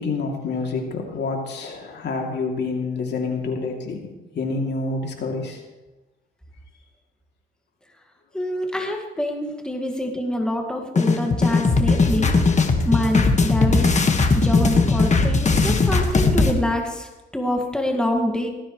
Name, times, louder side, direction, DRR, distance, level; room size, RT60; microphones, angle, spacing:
voice 1, 0.0-4.0 4.3-5.6, left 3 dB, 60° left, 1 dB, 2.8 m, -27 dB
voice 2, 8.3-12.3 12.8-13.9 14.3-18.5, left 1 dB, 5° left, 1 dB, 1.9 m, -26 dB
sound 1, 11.0-16.5, left 3 dB, 35° left, 1.6 m, -18 dB
18.0 x 14.0 x 3.2 m, 1.1 s
cardioid pair, 90°, 20 cm